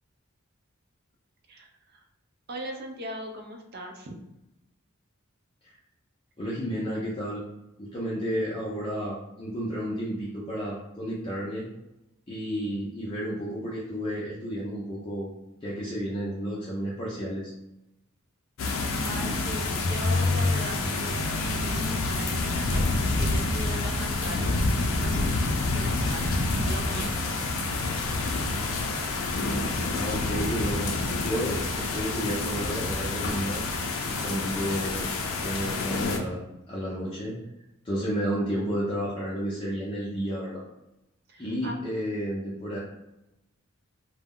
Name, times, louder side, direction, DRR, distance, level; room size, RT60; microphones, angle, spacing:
voice 1, 1.5-2.0 2.5-4.2 19.0-26.4 26.7-27.4 41.3-41.8, right 1 dB, 50° right, 2 dB, 0.5 m, -40 dB
voice 2, 6.4-7.4 7.8-11.6 12.3-15.3 15.6-17.5 29.6-30.9 31.2-33.6 34.0-35.1 35.4-36.4 36.7-37.4 37.8-40.6 41.4-42.8, equal, 25° left, -6 dB, 0.5 m, -32 dB
sound 1, 18.6-36.2, left 2 dB, 75° left, 0.4 m, -27 dB
2.2 x 2.0 x 3.6 m, 0.91 s
head